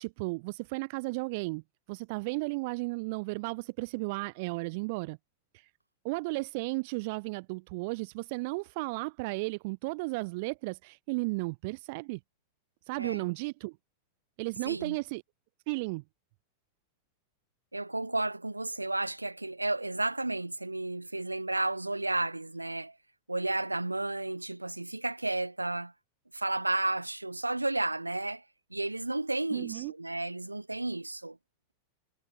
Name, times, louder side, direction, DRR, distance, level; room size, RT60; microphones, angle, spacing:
voice 1, 0.0-1.6 1.9-5.2 5.5-5.7 6.0-12.2 12.9-13.8 14.4-15.2 15.7-16.0 29.5-29.9, right 26 dB, 50° right, 0.7 m, -34 dB
voice 2, 14.6-15.0 17.7-22.9 23.3-25.9 26.3-28.4 28.7-31.4, right 2 dB, 85° right, 2.3 m, -32 dB
figure-of-eight pair, 90°, 0 cm